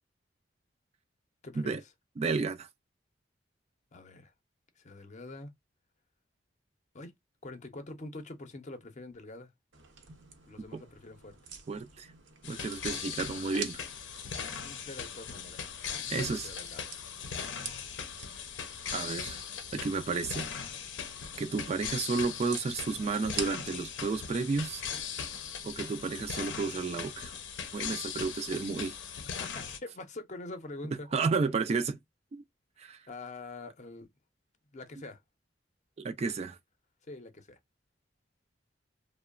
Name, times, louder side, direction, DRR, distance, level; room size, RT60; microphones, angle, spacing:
voice 1, 1.4-1.8 3.9-4.3 4.8-5.5 6.9-7.1 7.4-9.5 10.5-11.4 14.6-16.9 29.4-31.1 32.8-34.1 34.7-35.2 36.3-36.4 37.1-37.6, left 2 dB, 40° left, 0.6 m, -45 dB
voice 2, 2.2-2.7 10.7-10.8 11.7-12.1 12.4-13.8 16.1-16.5 18.9-19.4 19.7-20.5 21.4-24.8 25.6-27.4 27.7-29.0 31.1-32.0 32.3-32.4 32.8-33.1 36.0-36.6, right 4 dB, 35° right, 0.3 m, -32 dB
sound 1, 9.7-25.9, right 6 dB, 85° right, 0.7 m, -49 dB
sound 2, 12.4-29.8, left 7 dB, 85° left, 0.6 m, -39 dB
2.9 x 2.0 x 2.3 m
head